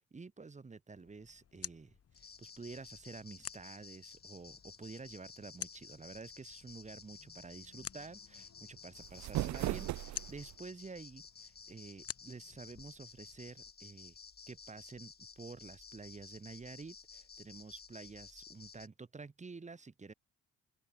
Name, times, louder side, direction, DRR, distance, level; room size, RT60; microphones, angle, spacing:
voice 1, 0.1-14.2 14.5-20.1, right 4 dB, 25° right, 1.8 m, -50 dB
sound 1, 1.0-13.7, left 8 dB, 50° left, 3.2 m, -52 dB
sound 2, 2.2-18.9, left 5 dB, 30° left, 1.9 m, -54 dB
sound 3, 8.9-10.6, right 15 dB, 65° right, 0.6 m, -37 dB
open air
cardioid pair, 90°, 30 cm